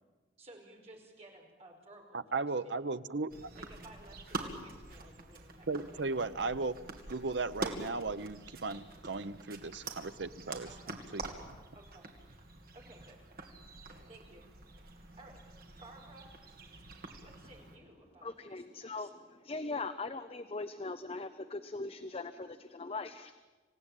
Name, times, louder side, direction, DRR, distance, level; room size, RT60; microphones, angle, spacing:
voice 1, 0.4-2.7 3.5-6.4 10.7-11.0 11.7-12.4 12.7-13.3 14.1-14.4 15.1-15.4 15.8-16.4 17.2-19.1, right 2 dB, 35° right, 0 dB, 5.0 m, -56 dB
voice 2, 2.1-3.5 5.7-6.8 7.1-11.6, right 3 dB, 75° right, 13 dB, 0.8 m, -36 dB
sound 1, 3.3-17.8, right 2 dB, 55° right, 2.8 m, -46 dB
voice 3, 18.2-23.4, left 3 dB, 30° left, 10 dB, 0.7 m, -40 dB
27.0 x 17.0 x 9.1 m, 1.3 s
head